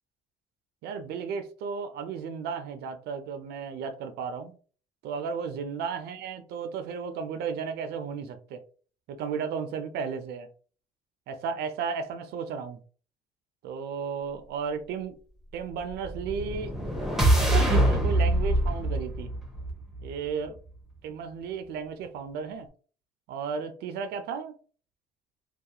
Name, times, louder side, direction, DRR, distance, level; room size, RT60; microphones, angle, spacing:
voice 1, 0.8-4.5 5.0-8.6 9.1-10.5 11.3-12.8 13.6-15.2 15.5-16.7 17.1-19.3 20.0-20.6 21.0-22.7 23.3-24.5, right 6 dB, 75° right, 0.4 m, -34 dB
sound 1, 16.0-20.2, right 1 dB, ahead, 0.6 m, -24 dB
2.3 x 2.1 x 2.8 m
cardioid pair, 110°, 17 cm